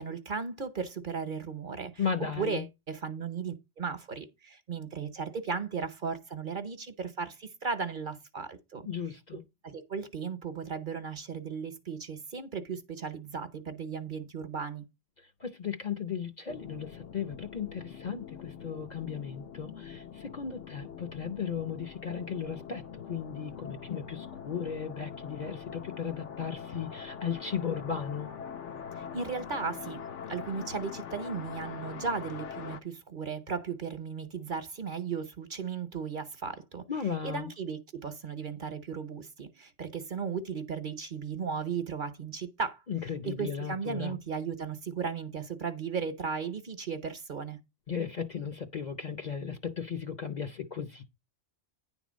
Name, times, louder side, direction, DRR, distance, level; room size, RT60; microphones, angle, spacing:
voice 1, 0.0-1.9 2.2-8.9 9.6-14.8 29.0-30.0 30.3-36.8 37.2-42.8 43.2-47.6, right 5 dB, 45° right, 1.0 m, -36 dB
voice 2, 2.0-2.6 8.8-9.4 15.4-28.3 36.9-37.5 42.9-44.2 47.9-51.1, left 7 dB, 45° left, 0.7 m, -36 dB
sound 1, 16.5-32.8, left 7 dB, 80° left, 1.2 m, -43 dB
9.9 x 3.6 x 6.2 m
omnidirectional pair, 1.2 m